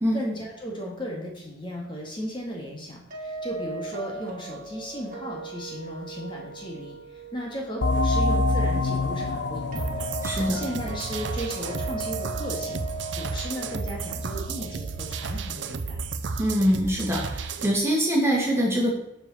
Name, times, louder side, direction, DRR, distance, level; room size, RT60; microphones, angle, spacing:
voice 1, 0.1-12.8 13.1-16.0, equal, 25° left, -2 dB, 2.0 m, -35 dB
sound 1, 3.1-16.0, right 3 dB, 45° right, 1.9 m, -39 dB
sound 2, 7.8-13.1, left 2 dB, 65° left, 0.6 m, -27 dB
sound 3, 9.8-17.8, right 4 dB, 75° right, 0.6 m, -33 dB
voice 2, 10.2-10.6 16.4-18.9, equal, 15° right, -3 dB, 2.0 m, -23 dB
7.2 x 5.0 x 7.2 m, 0.78 s
head